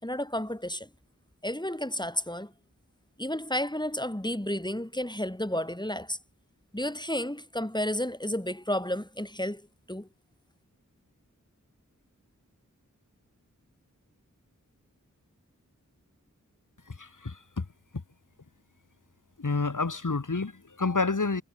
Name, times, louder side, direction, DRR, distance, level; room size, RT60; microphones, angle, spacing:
voice 1, 0.0-0.9 1.4-2.5 3.2-6.2 6.7-9.6 9.9-10.1, left 1 dB, 15° left, 4.3 m, -31 dB
voice 2, 16.9-17.7 19.4-21.4, left 3 dB, 70° left, 2.3 m, -29 dB
wide cardioid pair, 45°, 32 cm